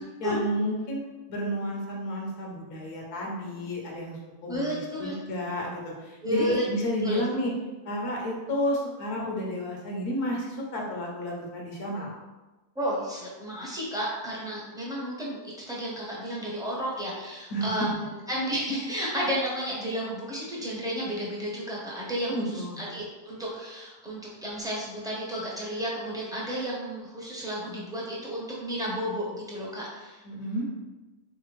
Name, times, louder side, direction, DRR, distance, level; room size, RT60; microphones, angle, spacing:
voice 1, 0.2-1.0 1.3-7.5 7.8-12.1 17.5-18.0 22.3-22.8 30.2-30.7, equal, 80° left, -2 dB, 1.4 m, -31 dB
voice 2, 4.5-5.1 6.2-6.6 7.0-7.2 12.8-15.4 15.7-30.2, equal, 5° right, -6 dB, 0.7 m, -32 dB
3.7 x 3.4 x 3.2 m, 1.1 s
omnidirectional pair, 1.6 m